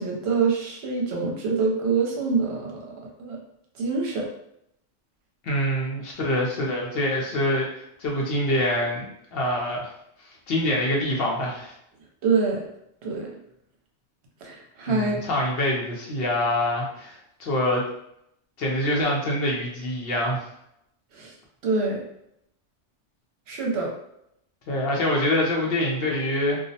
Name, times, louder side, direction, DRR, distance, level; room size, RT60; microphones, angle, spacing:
voice 1, 0.0-2.7 3.2-3.4 3.7-4.3 12.2-12.7 13.0-13.3 14.4-15.2 21.1-21.3 21.6-22.0 23.5-23.9, right 4 dB, 70° right, -1 dB, 0.8 m, -25 dB
voice 2, 5.4-9.0 9.3-9.9 10.2-11.7 14.9-17.8 18.6-20.5 24.7-26.6, left 1 dB, 60° left, -2 dB, 0.8 m, -25 dB
2.4 x 2.0 x 2.6 m, 0.76 s
omnidirectional pair, 1.2 m